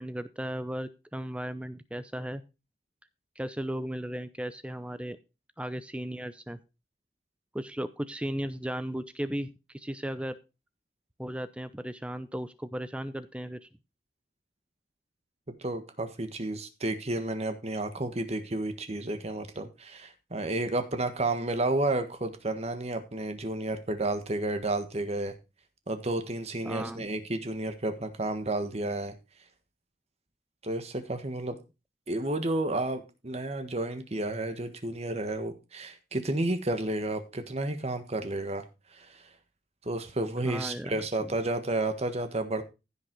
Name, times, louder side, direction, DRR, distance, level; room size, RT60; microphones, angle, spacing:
voice 1, 0.0-2.4 3.4-5.2 5.6-6.6 7.5-10.4 11.2-13.7 26.6-27.1 40.4-41.4, equal, 5° right, 12 dB, 0.6 m, -36 dB
voice 2, 15.6-25.3 25.9-29.1 30.6-31.6 32.1-39.3 39.8-42.6, right 2 dB, 35° right, 8 dB, 1.4 m, -31 dB
15.5 x 6.5 x 4.6 m, 0.28 s
head